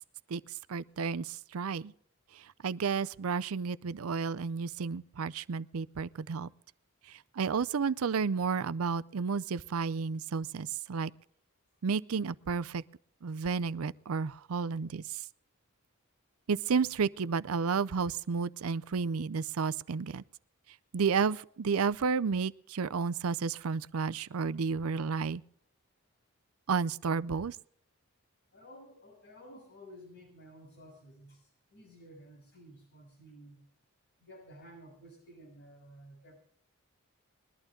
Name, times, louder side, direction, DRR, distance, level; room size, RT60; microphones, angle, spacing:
voice 1, 0.7-1.9 2.6-6.5 7.1-11.1 11.8-12.8 13.2-15.2 16.5-20.2 20.9-25.4 26.7-27.6, right 5 dB, 85° right, 0.5 m, -32 dB
voice 2, 28.5-33.6 34.2-36.4, equal, 55° left, 6.7 m, -53 dB
21.0 x 11.5 x 3.8 m
head